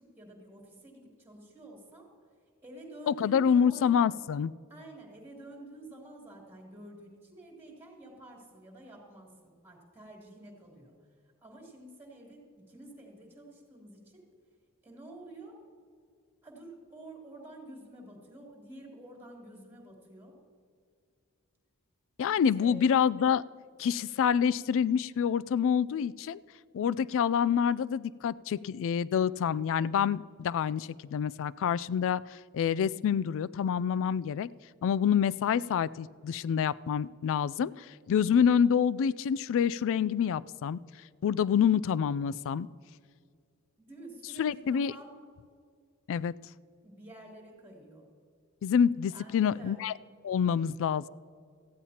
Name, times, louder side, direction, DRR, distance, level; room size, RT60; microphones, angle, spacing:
voice 1, 0.0-2.1 2.6-3.9 4.7-10.9 11.4-14.2 14.8-15.6 16.4-20.4 22.2-22.7 43.8-45.1 46.8-48.0 49.1-49.8, right 1 dB, 10° right, -1 dB, 3.0 m, -49 dB
voice 2, 3.1-4.5 22.2-23.4 23.8-26.4 26.7-34.5 34.8-40.8 41.2-42.7 44.4-44.9 46.1-46.3 48.6-49.9 50.2-51.1, left 7 dB, 60° left, 19 dB, 0.3 m, -27 dB
18.0 x 14.0 x 2.9 m, 2.2 s
head